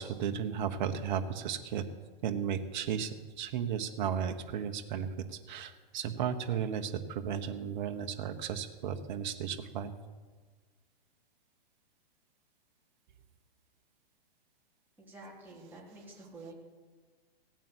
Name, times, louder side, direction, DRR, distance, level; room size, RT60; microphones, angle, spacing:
voice 1, 0.0-1.9 2.2-9.9, right 8 dB, 50° right, 7 dB, 1.4 m, -34 dB
voice 2, 15.0-16.5, right 2 dB, 5° right, -5 dB, 3.8 m, -49 dB
16.5 x 9.0 x 8.1 m, 1.4 s
hypercardioid pair, 145°, 30 cm